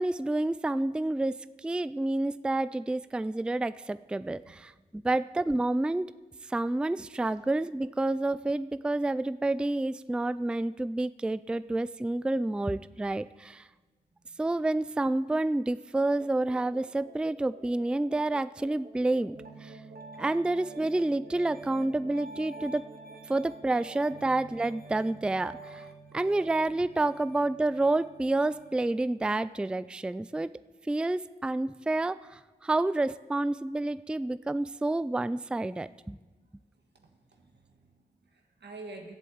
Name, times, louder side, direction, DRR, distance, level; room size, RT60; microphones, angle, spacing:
voice 1, 0.0-1.4 1.6-6.1 6.5-13.7 14.4-19.4 19.6-19.8 20.2-22.9 23.3-25.9 26.1-30.5 30.9-36.2, right 2 dB, 5° right, 15 dB, 0.3 m, -29 dB
sound 1, 15.9-24.2, right 1 dB, 35° right, 1.8 m, -53 dB
Piano, 19.3-29.0, right 3 dB, 60° right, 1.5 m, -48 dB
voice 2, 36.9-39.1, right 2 dB, 85° right, 3 dB, 1.6 m, -48 dB
11.0 x 7.8 x 8.7 m, 1.3 s
cardioid pair, 45°, 17 cm